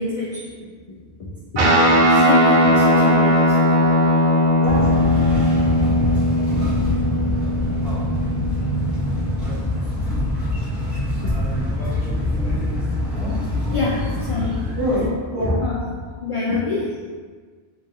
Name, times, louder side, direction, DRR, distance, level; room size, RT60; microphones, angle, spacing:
voice 1, 0.0-3.9 11.2-11.3 13.7-14.7 15.6-17.0, left 3 dB, 55° left, -4 dB, 0.3 m, -27 dB
Guitar, 1.6-9.2, equal, 70° right, 0.8 m, -18 dB
sound 1, 4.6-15.1, left 1 dB, ahead, 0.9 m, -24 dB
voice 2, 4.6-5.0 11.8-11.9 12.6-13.4 14.8-15.0 15.3-15.7, equal, 25° right, -11 dB, 1.3 m, -26 dB
3.5 x 2.9 x 2.6 m, 1.5 s
omnidirectional pair, 1.0 m